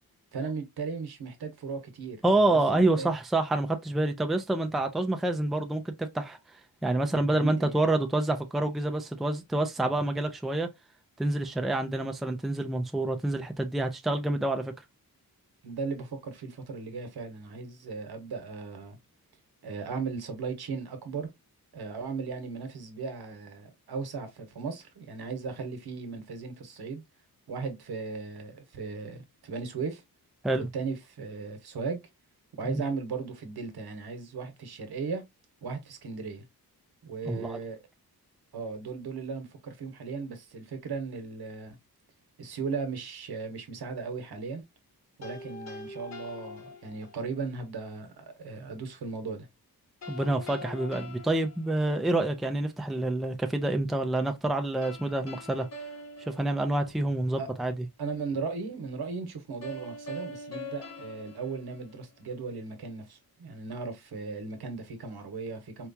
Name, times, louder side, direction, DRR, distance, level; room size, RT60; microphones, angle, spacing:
voice 1, 0.3-3.1 7.3-7.7 15.6-19.0 19.6-21.3 21.7-27.0 27.5-30.0 30.7-32.0 32.6-35.2 35.6-36.4 37.0-37.8 38.5-41.8 42.4-44.6 45.2-49.5 57.4-57.5 58.0-65.9, right 4 dB, 80° right, 1.1 m, -37 dB
voice 2, 2.2-6.4 6.8-10.7 11.2-14.7 30.4-30.7 32.6-32.8 37.3-37.6 50.1-55.7 56.3-57.7, right 2 dB, ahead, 0.4 m, -27 dB
sound 1, 45.2-47.4 50.0-52.4 54.8-57.3 59.6-62.4, left 2 dB, 45° left, 1.1 m, -44 dB
4.4 x 2.3 x 2.6 m
wide cardioid pair, 165°, 38 cm